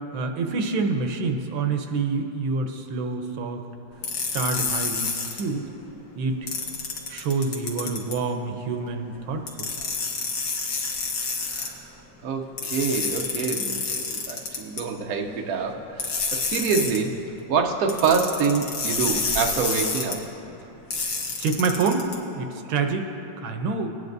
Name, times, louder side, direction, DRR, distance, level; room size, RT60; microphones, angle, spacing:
voice 1, 0.1-3.6 4.3-5.6 6.2-6.4 7.1-9.7 21.4-22.1 22.3-23.9, right 4 dB, 90° right, 5 dB, 1.5 m, -27 dB
sound 1, 4.0-5.4 6.5-8.2 9.5-11.7 12.6-14.8 16.0-17.0 17.9-20.1 20.9-22.1, left 4 dB, 65° left, 1.7 m, -28 dB
voice 2, 11.5-12.0 12.2-17.1 17.5-20.2, right 5 dB, 60° right, 2 dB, 1.1 m, -26 dB
18.5 x 9.3 x 2.6 m, 2.9 s
omnidirectional pair, 2.1 m